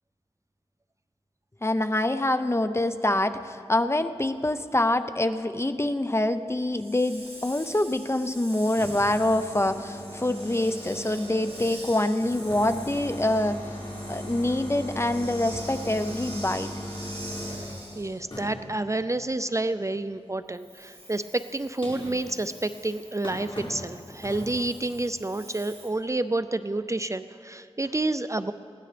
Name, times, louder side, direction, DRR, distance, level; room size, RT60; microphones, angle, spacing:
voice 1, 1.6-13.8 14.1-16.7, left 1 dB, 25° left, 10 dB, 0.6 m, -25 dB
Hiss, 6.7-18.2 20.5-25.9, right 1 dB, 70° right, 5.0 m, -45 dB
sound 1, 8.5-11.8 12.2-17.7 18.3-18.7 21.0-21.1 21.8-22.2 22.8-22.9 23.2-23.8 24.2-24.5, equal, 55° left, 5.1 m, -38 dB
voice 2, 18.0-28.5, right 2 dB, 30° right, 12 dB, 0.4 m, -29 dB
21.0 x 17.0 x 3.4 m, 2.4 s
wide cardioid pair, 65°, 11 cm